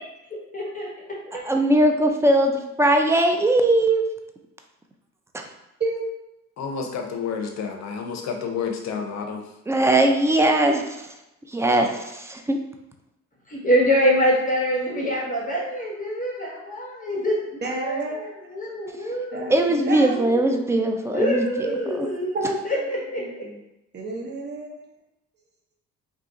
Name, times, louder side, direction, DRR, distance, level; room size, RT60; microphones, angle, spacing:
voice 1, 0.5-1.4 13.5-19.6 20.0-20.6 21.1-23.3, equal, 25° left, -3 dB, 1.0 m, -25 dB
voice 2, 1.4-4.0 5.3-5.4 9.7-11.1 11.5-12.6 19.5-22.1, right 1 dB, 10° right, 3 dB, 0.4 m, -20 dB
voice 3, 6.6-9.5, left 6 dB, 65° left, 3 dB, 0.7 m, -30 dB
voice 4, 17.6-18.2 19.3-20.4 21.6-21.9 22.3-22.9 23.2-23.5 23.9-24.7, right 3 dB, 35° right, 0 dB, 0.8 m, -30 dB
2.8 x 2.4 x 3.7 m, 0.91 s
cardioid pair, 90°, 30 cm